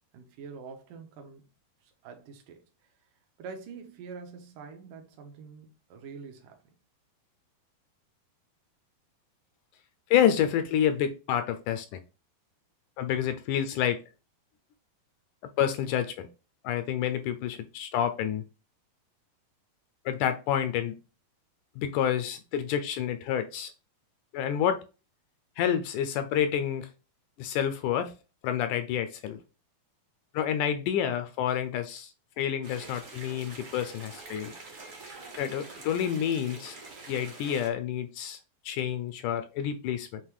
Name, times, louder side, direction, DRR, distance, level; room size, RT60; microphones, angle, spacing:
voice 1, 0.1-1.4 2.0-2.6 3.4-6.6, right 5 dB, 75° right, 2.6 m, -45 dB
voice 2, 10.1-12.0 13.0-14.0 15.6-16.3 16.6-18.4 20.1-21.0 21.8-23.7 24.3-24.8 25.6-26.9 27.4-28.1 28.4-29.4 30.3-34.5 35.4-36.8 37.1-38.4 38.7-40.2, left 9 dB, 80° left, 1.9 m, -28 dB
sound 1, 32.6-37.7, right 3 dB, 50° right, 0.9 m, -45 dB
7.3 x 3.0 x 4.8 m
omnidirectional pair, 3.9 m